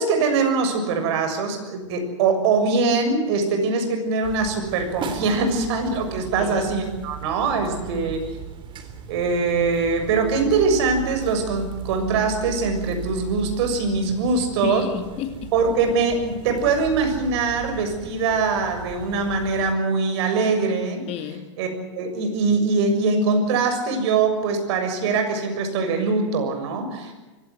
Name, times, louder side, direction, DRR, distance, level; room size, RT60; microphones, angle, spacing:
voice 1, 0.0-8.2 9.1-14.8 15.5-21.1 21.6-21.7 22.0-27.1, right 4 dB, 60° right, 6 dB, 6.9 m, -22 dB
sound 1, 4.2-19.8, right 8 dB, 30° right, 3.6 m, -37 dB
voice 2, 6.4-6.7 7.9-8.1 14.6-15.5 21.1-21.5, left 9 dB, 40° left, 7 dB, 2.6 m, -31 dB
24.0 x 17.0 x 9.8 m, 1.2 s
hypercardioid pair, 110°, 16 cm